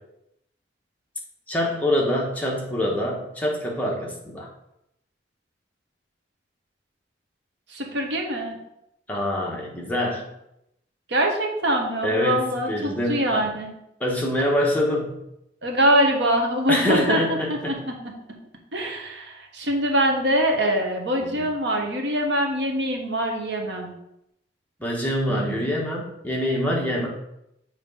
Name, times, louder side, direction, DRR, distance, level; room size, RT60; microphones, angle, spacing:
voice 1, 1.5-4.5 9.1-10.3 12.0-13.5 14.0-15.2 16.7-17.8 21.2-21.4 24.8-27.1, left 1 dB, 10° left, -2 dB, 1.1 m, -25 dB
voice 2, 7.7-8.6 11.1-13.7 15.6-17.9 18.7-23.9 25.3-25.6, equal, 75° right, 2 dB, 1.1 m, -24 dB
7.1 x 3.0 x 5.3 m, 0.82 s
head